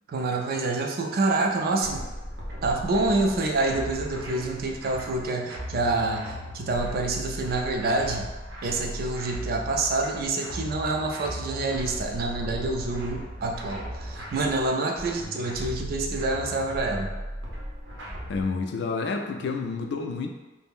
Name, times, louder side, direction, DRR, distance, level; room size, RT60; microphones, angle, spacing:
voice 1, 0.1-2.0 2.6-8.3 8.6-17.1, right 2 dB, 55° right, 2 dB, 0.4 m, -27 dB
sound 1, 1.8-18.4, equal, 90° right, 0.7 m, -37 dB
voice 2, 18.3-20.3, left 4 dB, 65° left, 4 dB, 0.3 m, -30 dB
2.4 x 2.0 x 3.5 m, 1.2 s
head